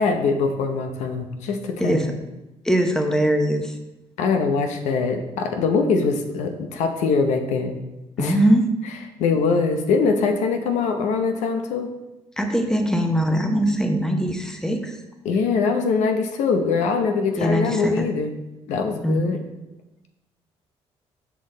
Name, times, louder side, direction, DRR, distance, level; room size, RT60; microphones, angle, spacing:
voice 1, 0.0-2.1 4.2-7.8 8.2-8.4 9.2-11.9 15.2-18.4 18.7-19.4, left 4 dB, 85° left, 6 dB, 0.8 m, -22 dB
voice 2, 2.6-3.7 8.2-8.6 12.4-15.0 17.4-18.1 19.0-19.3, right 1 dB, 5° left, 4 dB, 0.8 m, -21 dB
6.2 x 5.4 x 3.9 m, 1.0 s
cardioid pair, 95°, 12 cm